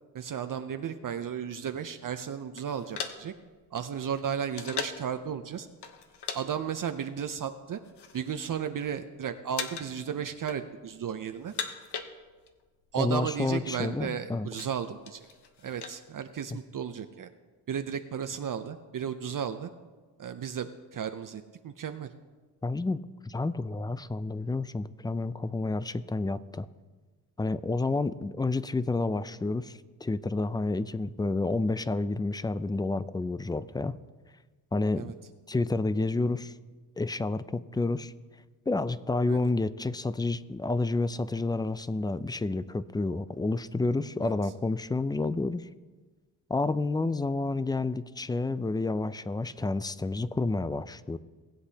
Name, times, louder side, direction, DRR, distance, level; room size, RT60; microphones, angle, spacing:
voice 1, 0.1-3.3 3.7-5.7 6.3-7.8 8.1-11.5 12.9-15.3 15.6-17.3 17.7-19.7 20.2-22.1 35.0-35.1 39.3-39.5 44.2-44.3, right 8 dB, 55° right, 8 dB, 0.6 m, -34 dB
sound 1, 2.6-5.1 5.8-6.4 6.7-6.9 7.6-8.3 8.6-9.1 9.5-10.0 10.3-11.0 11.3-12.6 12.9-13.0 13.2-13.5 14.0-16.0, left 6 dB, 80° left, 1.0 m, -39 dB
voice 2, 13.0-14.5 22.6-26.7 27.4-34.0 34.7-35.1 35.5-36.5 37.0-38.1 38.7-45.7 46.5-51.2, left 3 dB, 10° left, 16 dB, 0.3 m, -30 dB
19.0 x 8.1 x 2.8 m, 1.3 s
cardioid pair, 75°, 40 cm